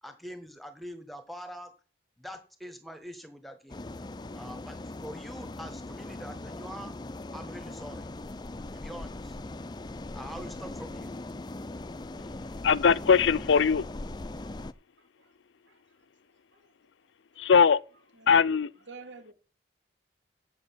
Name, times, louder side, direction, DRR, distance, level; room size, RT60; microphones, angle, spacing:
voice 1, 0.0-1.7 2.2-3.9 4.3-6.9 7.3-8.1 8.7-9.4 10.1-11.1, equal, ahead, 1.5 m, -44 dB
sound 1, 3.7-14.7, left 2 dB, 25° left, 0.4 m, -40 dB
voice 2, 12.6-13.9 17.4-17.8 18.3-18.7, left 6 dB, 90° left, 0.5 m, -21 dB
voice 3, 15.0-15.3 15.7-15.8 16.5-16.6 18.2-18.6 18.9-19.3, right 3 dB, 90° right, 2.4 m, -48 dB
8.2 x 7.9 x 7.7 m
head